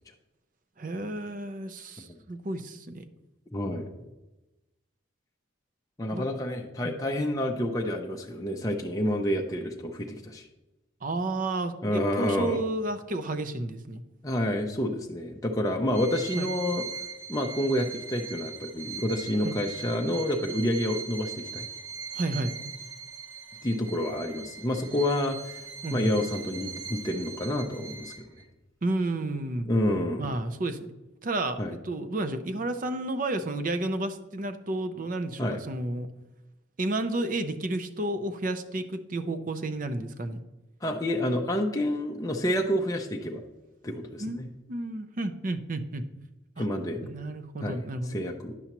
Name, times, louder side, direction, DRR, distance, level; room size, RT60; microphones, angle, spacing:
voice 1, 0.8-3.0 6.1-6.3 6.8-7.0 11.0-14.0 16.4-16.5 19.4-19.6 22.1-22.6 25.8-26.1 28.8-29.7 30.2-30.8 31.2-36.1 36.8-40.4 44.2-44.4 44.7-46.0 46.6-46.7 47.0-48.2, right 2 dB, 40° right, 10 dB, 0.5 m, -31 dB
voice 2, 3.5-4.0 6.0-10.5 11.8-12.6 14.2-16.9 17.3-21.6 23.6-28.3 29.7-30.3 31.6-31.7 35.4-35.6 40.8-43.4 43.8-44.5 46.6-47.1 47.6-48.5, left 1 dB, 15° left, 1 dB, 0.5 m, -29 dB
Bowed string instrument, 15.9-28.4, right 6 dB, 80° right, 0.9 m, -40 dB
9.8 x 7.0 x 2.9 m, 1.0 s
head